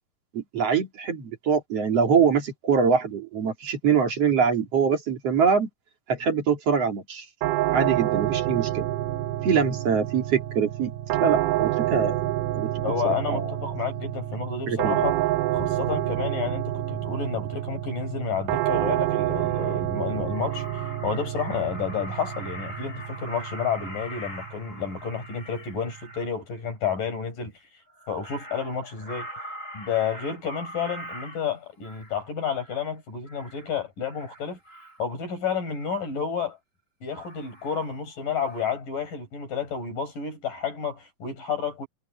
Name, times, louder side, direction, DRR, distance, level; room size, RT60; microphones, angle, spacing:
voice 1, 0.3-5.7 6.1-7.3 7.7-8.9 9.4-10.9 11.2-12.1 12.5-12.7 13.0-13.5 14.7-15.0, right 6 dB, 45° right, 3.6 m, -24 dB
sound 1, 7.4-26.3, right 14 dB, 75° right, 2.2 m, -29 dB
voice 2, 12.8-15.2 15.5-20.7 21.0-27.5 28.1-29.3 29.7-34.6 35.0-36.6 37.0-41.9, left 6 dB, 70° left, 7.9 m, -30 dB
Crow, 18.9-19.0 19.3-19.9 20.2-26.3 27.9-32.2 32.5-32.9 33.3-33.7 34.0-35.0 35.8-36.1 37.1-38.2 38.4-38.7, equal, 20° left, 7.5 m, -42 dB
omnidirectional pair, 4.0 m